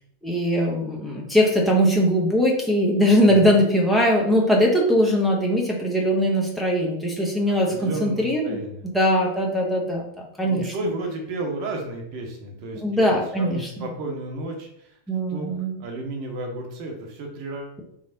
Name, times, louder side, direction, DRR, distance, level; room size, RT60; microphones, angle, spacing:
voice 1, 0.2-10.7 12.8-13.7 15.1-15.7, equal, ahead, -3 dB, 0.7 m, -21 dB
voice 2, 3.2-3.5 7.5-8.8 10.4-13.0 13.4-15.0 15.3-15.5 15.8-17.8, right 2 dB, 45° right, 2 dB, 0.9 m, -33 dB
3.6 x 3.3 x 2.6 m, 0.71 s
figure-of-eight pair, 90°, 0 cm